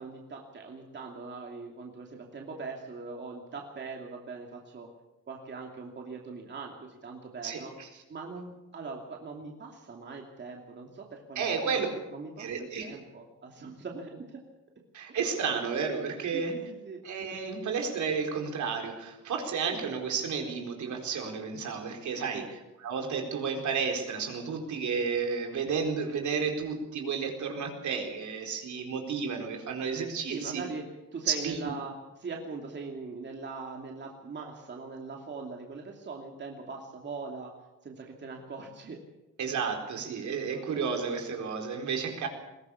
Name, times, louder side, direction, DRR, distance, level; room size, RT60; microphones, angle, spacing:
voice 1, 0.0-4.9 5.3-7.7 8.1-14.4 16.3-17.0 22.3-22.5 30.2-30.8 31.1-37.5 37.8-39.0 40.5-41.0, right 4 dB, 35° right, 1 dB, 2.8 m, -41 dB
voice 2, 7.4-7.9 11.4-11.9 12.4-13.0 14.9-16.6 17.0-22.4 22.8-30.6 31.3-31.7 39.4-42.3, right 5 dB, 65° right, 3 dB, 4.4 m, -32 dB
21.5 x 17.0 x 7.2 m, 1.0 s
cardioid pair, 125°, 32 cm